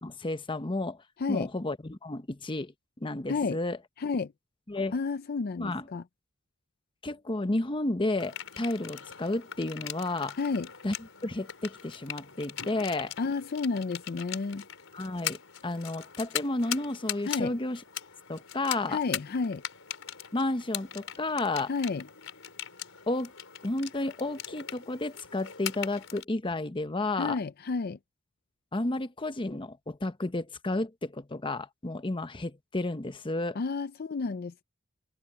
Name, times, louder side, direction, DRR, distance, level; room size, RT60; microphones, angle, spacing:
voice 1, 0.0-1.0 1.3-2.7 3.0-3.8 4.7-4.9 5.6-5.9 7.0-10.4 10.8-10.9 11.2-13.1 14.9-17.8 18.3-19.0 20.3-21.7 23.1-23.3 23.6-27.4 28.7-33.6, left 2 dB, 25° left, 0.9 m, -32 dB
voice 2, 4.0-4.3 4.9-6.0 10.4-10.7 13.2-14.6 17.3-17.5 18.9-19.6 21.7-22.1 27.2-28.0 33.5-34.6, left 4 dB, 50° left, 0.5 m, -31 dB
sound 1, 8.2-26.2, left 10 dB, 75° left, 5.1 m, -40 dB
head